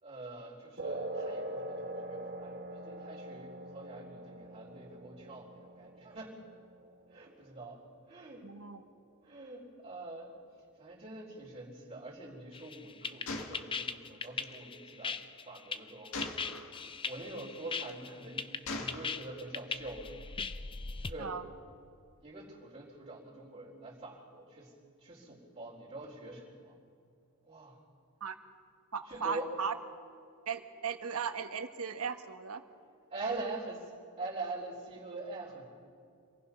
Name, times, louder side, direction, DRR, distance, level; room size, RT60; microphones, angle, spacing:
voice 1, 0.0-6.4 7.1-7.8 8.1-8.5 9.2-10.3 10.8-15.2 15.5-16.7 17.0-20.4 21.0-21.4 22.2-24.7 25.0-26.7 27.5-27.8 29.1-29.5 33.1-33.9 34.2-35.6, right 2 dB, 30° right, -6 dB, 4.0 m, -44 dB
sound 1, 0.8-7.8, right 1 dB, 50° right, 1.3 m, -42 dB
voice 2, 8.4-8.8 21.2-21.4 28.2-28.4 28.9-29.7 30.5-32.6, right 6 dB, 80° right, 8 dB, 1.3 m, -37 dB
sound 2, 12.5-21.1, left 5 dB, 25° left, 0.5 m, -39 dB
Gunshot gunfire, 13.3-14.5 16.1-16.9 17.7-18.1 18.7-19.5, left 3 dB, 65° left, 1.8 m, -41 dB
26.5 x 19.0 x 5.7 m, 2.4 s
head